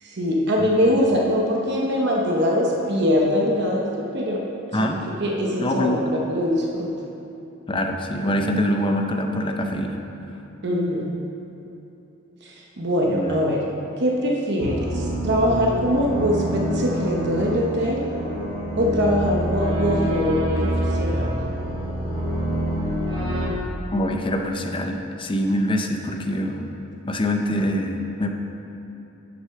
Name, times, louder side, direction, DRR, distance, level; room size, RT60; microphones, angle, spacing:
voice 1, 0.0-4.4 4.8-4.9 5.2-6.9 10.6-11.1 12.4-13.6 14.0-18.0 18.8-21.3, equal, 55° right, -1 dB, 0.9 m, -22 dB
voice 2, 4.7-5.0 5.6-6.0 7.7-10.0 13.1-13.4 23.9-26.8 27.1-28.3, equal, 25° left, 3 dB, 0.6 m, -24 dB
sound 1, 14.6-23.5, right 1 dB, 25° right, 1.7 m, -26 dB
8.2 x 6.2 x 5.8 m, 2.9 s
head